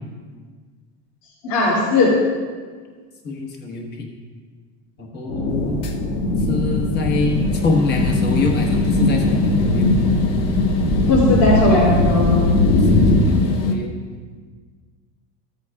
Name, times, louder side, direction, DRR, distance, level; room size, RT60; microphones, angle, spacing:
voice 1, 1.4-2.1 11.1-12.4, left 2 dB, 70° left, -8 dB, 2.8 m, -17 dB
voice 2, 3.2-4.1 5.0-5.8 6.4-9.9 12.7-13.9, left 3 dB, 30° left, 0 dB, 1.4 m, -25 dB
sound 1, 5.3-13.2, left 1 dB, 85° left, 2.2 m, -20 dB
sound 2, 5.8-13.7, left 5 dB, 45° left, 0.9 m, -24 dB
14.5 x 8.2 x 2.4 m, 1.5 s
cardioid pair, 165°, 35 cm